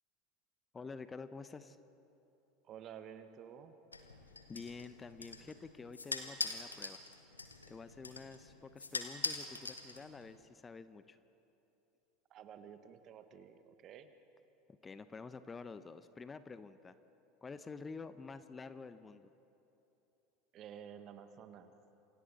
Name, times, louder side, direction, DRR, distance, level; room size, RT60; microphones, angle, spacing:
voice 1, 0.7-1.8 4.5-7.0 7.7-11.2 14.7-16.9 17.4-19.3, left 4 dB, 20° left, 12 dB, 0.9 m, -49 dB
voice 2, 2.6-3.8 12.3-14.1 20.5-21.7, right 8 dB, 45° right, 9 dB, 1.5 m, -52 dB
sound 1, 3.9-10.4, left 3 dB, 90° left, 1.4 m, -43 dB
28.0 x 25.5 x 4.3 m, 2.9 s
figure-of-eight pair, 75°, 0 cm